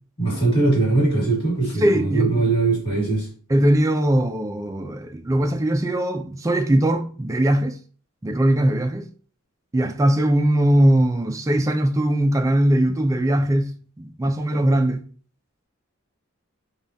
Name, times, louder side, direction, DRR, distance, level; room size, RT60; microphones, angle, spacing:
voice 1, 0.2-3.3, right 3 dB, 25° left, 1.6 m, -21 dB
voice 2, 1.8-2.5 3.5-7.8 8.2-9.1 9.7-15.1, right 1 dB, 15° right, 0.3 m, -20 dB
5.2 x 2.3 x 2.6 m
head